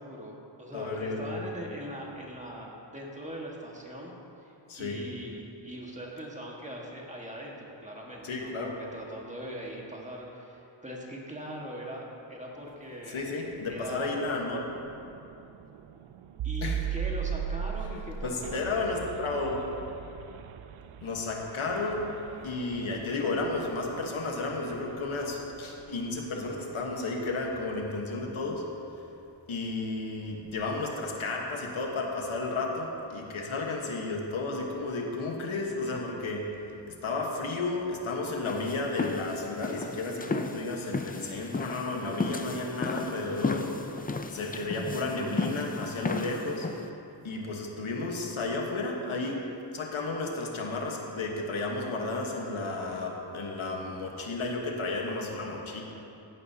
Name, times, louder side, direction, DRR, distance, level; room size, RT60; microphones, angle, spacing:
voice 1, 0.0-4.1 4.4-13.3 13.7-14.1 16.4-18.6, equal, 15° right, -2 dB, 1.6 m, -41 dB
voice 2, 0.7-1.5 4.7-5.0 8.2-8.7 13.1-14.7 16.6-16.8 18.2-19.6 21.0-22.1 22.4-28.6 29.5-36.6 36.9-43.7 44.3-46.7 47.2-49.5 49.7-55.8, left 3 dB, 85° left, 0 dB, 1.4 m, -32 dB
sound 1, 13.4-26.1, right 8 dB, 90° right, 0.6 m, -39 dB
sound 2, 38.4-46.9, left 3 dB, 20° left, 0.4 m, -34 dB
15.0 x 11.0 x 2.8 m, 2.8 s
wide cardioid pair, 95°, 47 cm